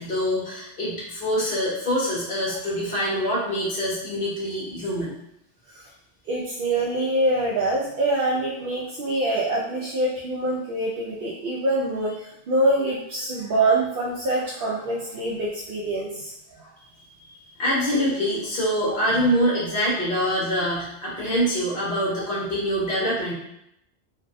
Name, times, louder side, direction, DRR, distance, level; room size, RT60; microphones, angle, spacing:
voice 1, 0.0-5.1 17.6-23.3, equal, 50° left, -6 dB, 1.3 m, -25 dB
voice 2, 6.3-16.7 17.9-18.0 18.8-19.0, right 1 dB, 60° right, -5 dB, 0.7 m, -25 dB
3.4 x 2.3 x 2.6 m, 0.77 s
omnidirectional pair, 1.2 m